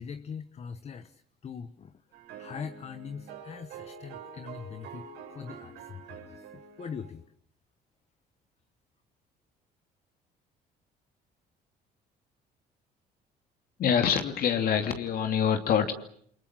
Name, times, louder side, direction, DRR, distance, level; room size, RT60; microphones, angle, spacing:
voice 1, 0.0-2.0 2.4-7.2, left 6 dB, 40° left, 12 dB, 1.2 m, -42 dB
sound 1, 2.1-7.1, right 6 dB, 90° right, 6.2 m, -46 dB
voice 2, 13.8-15.9, left 8 dB, 60° left, 6 dB, 2.8 m, -25 dB
29.0 x 23.5 x 7.4 m, 0.64 s
cardioid pair, 110°, 17 cm